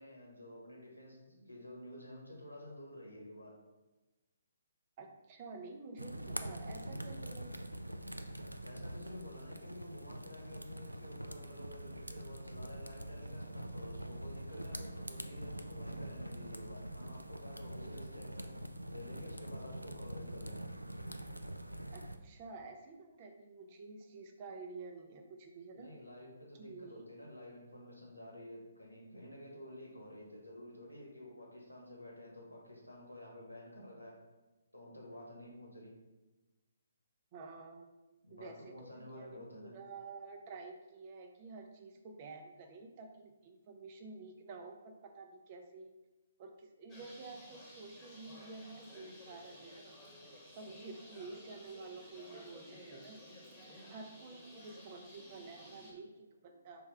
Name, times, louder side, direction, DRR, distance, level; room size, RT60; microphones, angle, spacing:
voice 1, 0.0-3.5 8.6-18.5 18.9-20.6 25.7-34.2 34.7-35.9 38.2-39.7, left 1 dB, 90° left, -2 dB, 1.5 m, -51 dB
voice 2, 5.0-7.8 21.9-25.9 26.5-27.1 37.3-37.9 38.3-45.9 46.4-49.9 50.5-53.2 53.9-56.9, right 3 dB, 35° right, 4 dB, 0.5 m, -50 dB
sound 1, 6.0-22.2, right 1 dB, 90° right, 0.3 m, -44 dB
Bird, 46.9-55.9, left 1 dB, 15° left, 1.1 m, -54 dB
3.4 x 3.2 x 4.8 m, 1.1 s
figure-of-eight pair, 135°, 0 cm